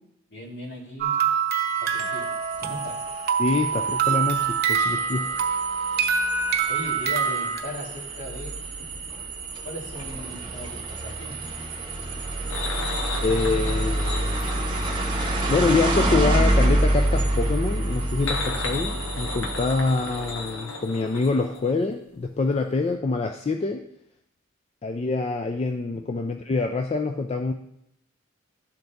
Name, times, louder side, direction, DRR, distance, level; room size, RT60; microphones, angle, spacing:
voice 1, 0.3-1.3 1.8-2.3 2.6-3.0 6.7-9.2 9.6-11.6 12.5-12.6 25.9-26.0, left 1 dB, 60° left, -2 dB, 1.9 m, -38 dB
sound 1, 1.0-7.6, right 6 dB, 50° right, 0.6 m, -25 dB
sound 2, 1.9-20.4, right 1 dB, 25° right, 1.0 m, -28 dB
voice 2, 3.4-5.3 13.2-14.5 15.5-23.8 24.8-27.5, left 3 dB, 30° left, 5 dB, 0.3 m, -25 dB
sound 3, 12.5-16.7 17.9-22.2 22.4-22.6 22.9-23.0, left 3 dB, 85° left, 1.1 m, -35 dB
12.0 x 3.9 x 3.4 m, 0.75 s
head